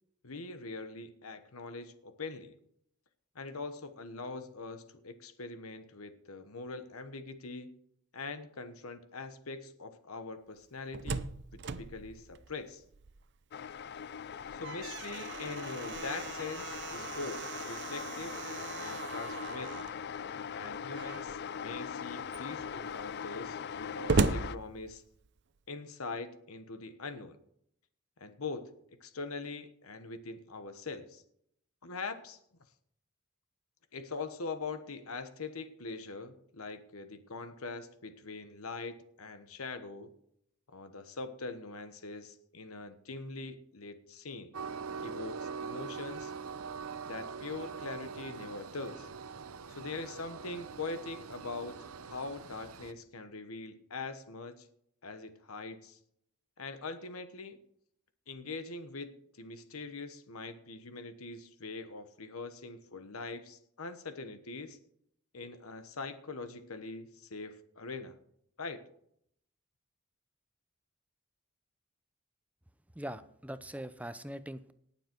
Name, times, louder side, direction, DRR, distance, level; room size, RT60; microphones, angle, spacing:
voice 1, 0.2-2.5 3.3-7.8 8.1-11.3 11.6-12.8 14.5-18.3 18.8-19.9 20.5-25.0 25.7-27.4 28.2-28.7 29.0-31.2 31.8-32.4 33.9-40.1 40.7-44.5 45.0-46.3 47.1-49.1 49.7-51.8 52.1-54.7 55.0-56.0 56.6-57.6 58.3-64.8 65.3-68.2 68.6-68.8, left 3 dB, 85° left, 10 dB, 1.2 m, -42 dB
Slam, 10.6-13.4 13.8-13.9 14.3-20.0 20.9-21.4 22.0-22.1 22.3-25.4, right 4 dB, 55° right, 0.6 m, -37 dB
sound 1, 13.5-24.6, left 7 dB, 50° left, 0.4 m, -41 dB
Train, 44.5-52.9, right 5 dB, 85° right, 0.8 m, -43 dB
voice 2, 73.0-74.7, right 1 dB, 5° right, 12 dB, 0.6 m, -42 dB
19.0 x 7.3 x 4.5 m, 0.70 s
head